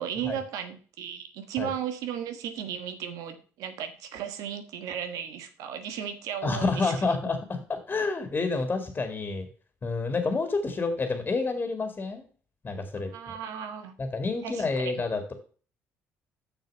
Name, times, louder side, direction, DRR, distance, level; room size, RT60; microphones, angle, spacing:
voice 1, 0.0-7.1 13.1-13.9 14.4-14.9, right 9 dB, 85° right, 9 dB, 1.3 m, -35 dB
voice 2, 6.4-9.5 9.8-12.2 12.6-13.3 14.0-15.3, left 3 dB, 30° left, 7 dB, 2.2 m, -29 dB
6.8 x 6.5 x 6.7 m, 0.41 s
supercardioid pair, 75°, 6 cm